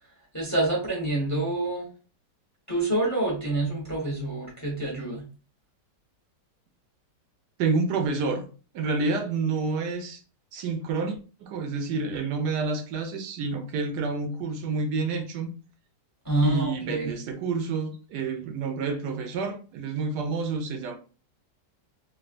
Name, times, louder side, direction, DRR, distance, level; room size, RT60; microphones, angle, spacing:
voice 1, 0.3-1.9 2.7-5.2 16.2-17.1, right 2 dB, 15° left, 0.8 m, -27 dB
voice 2, 7.6-8.5 8.7-10.2 10.5-15.5 16.4-21.0, right 4 dB, 80° right, 1.2 m, -29 dB
3.3 x 2.4 x 2.4 m
omnidirectional pair, 1.8 m